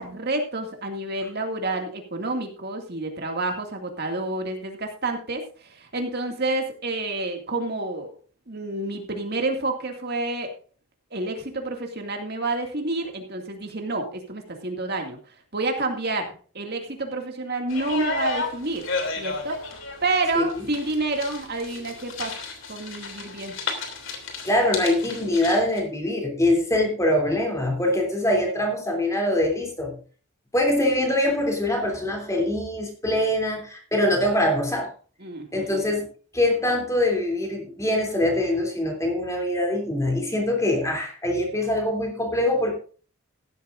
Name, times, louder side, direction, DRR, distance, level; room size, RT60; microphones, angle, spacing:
voice 1, 0.0-8.1 8.5-10.5 11.1-15.2 15.5-18.9 19.2-19.7 20.0-22.4 22.7-23.5 35.2-36.0, right 2 dB, 45° right, 3 dB, 2.3 m, -29 dB
sound 1, 17.7-25.8, left 4 dB, 60° left, 3.1 m, -33 dB
voice 2, 20.3-20.7 24.4-29.9 30.5-34.9 35.5-36.1 36.3-42.8, left 1 dB, 15° left, 1 dB, 3.1 m, -23 dB
16.0 x 12.0 x 2.6 m, 0.40 s
head